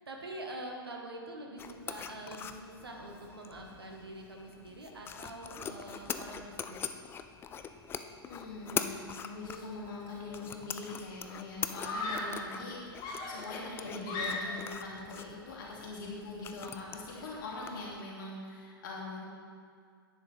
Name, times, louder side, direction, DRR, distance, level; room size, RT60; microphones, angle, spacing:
voice 1, 0.0-6.8 12.7-13.1, right 1 dB, 80° right, 1 dB, 1.6 m, -45 dB
sound 1, 1.6-18.0, left 7 dB, 20° left, 0.4 m, -43 dB
voice 2, 8.2-19.2, left 3 dB, 55° left, -4 dB, 2.5 m, -42 dB
Screaming, 10.3-10.7 11.8-12.5 13.0-14.8, left 2 dB, 35° left, 1.8 m, -37 dB
10.0 x 10.0 x 3.4 m, 2.2 s
figure-of-eight pair, 105°, 13 cm